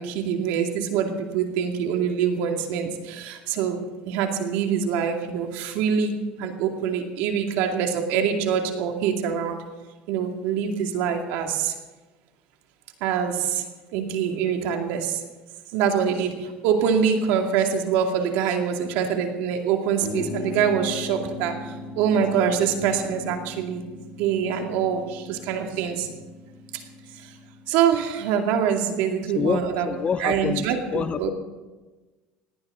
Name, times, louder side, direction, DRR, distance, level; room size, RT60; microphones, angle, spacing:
voice 1, 0.0-3.8 4.1-6.1 6.4-9.6 10.1-11.7 13.0-13.3 13.9-15.1 15.7-16.3 16.6-21.5 22.0-23.8 24.2-26.1 27.7-29.9 30.2-31.3, right 7 dB, 80° right, 3 dB, 2.4 m, -24 dB
sound 1, 20.0-27.7, left 3 dB, 90° left, 4.1 m, -38 dB
voice 2, 29.0-31.3, left 6 dB, 35° left, 13 dB, 0.9 m, -28 dB
18.0 x 18.0 x 3.9 m, 1.2 s
cardioid pair, 120°, 3 cm